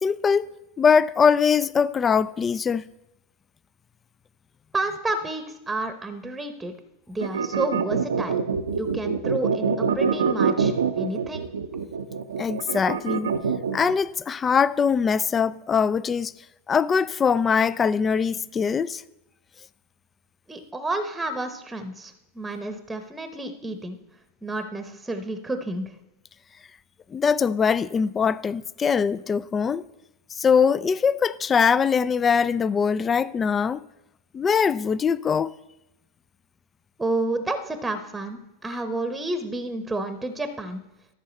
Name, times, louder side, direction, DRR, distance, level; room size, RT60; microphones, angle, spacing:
voice 1, 0.0-0.5 0.8-2.8 12.4-13.3 13.7-16.3 16.7-19.0 27.1-29.8 30.3-33.8 34.3-35.5, left 6 dB, 25° left, 0.3 m, -22 dB
voice 2, 4.7-6.7 7.1-8.4 8.7-11.5 20.5-24.0 24.4-25.9 37.0-40.8, right 2 dB, 10° right, 0.9 m, -30 dB
sound 1, 7.2-13.9, right 6 dB, 80° right, 0.6 m, -25 dB
13.0 x 5.5 x 4.1 m
hypercardioid pair, 95°, 0 cm